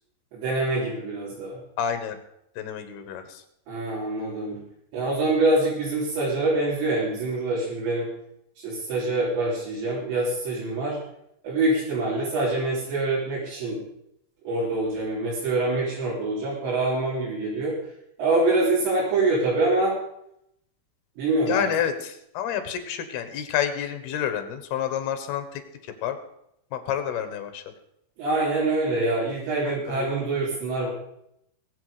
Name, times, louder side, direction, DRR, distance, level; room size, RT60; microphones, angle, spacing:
voice 1, 0.3-1.6 3.7-4.6 4.9-8.1 8.6-11.0 11.4-13.8 14.5-17.8 18.2-20.0 21.2-21.7 28.2-30.9, right 2 dB, 90° right, -8 dB, 5.7 m, -25 dB
voice 2, 1.8-2.2 2.6-3.2 21.5-25.6 26.0-26.2 26.7-27.6 29.7-30.1, left 9 dB, 70° left, 8 dB, 3.1 m, -29 dB
22.0 x 8.1 x 5.0 m, 0.77 s
omnidirectional pair, 5.0 m